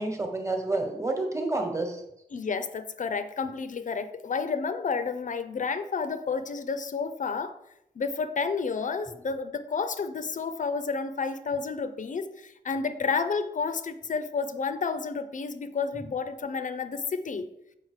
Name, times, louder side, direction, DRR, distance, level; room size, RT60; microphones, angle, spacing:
voice 1, 0.0-2.0, right 2 dB, 20° right, 4 dB, 1.2 m, -29 dB
voice 2, 2.3-7.6 8.0-17.5, left 5 dB, 55° left, 11 dB, 0.5 m, -31 dB
7.3 x 5.1 x 4.8 m, 0.82 s
wide cardioid pair, 165°, 16 cm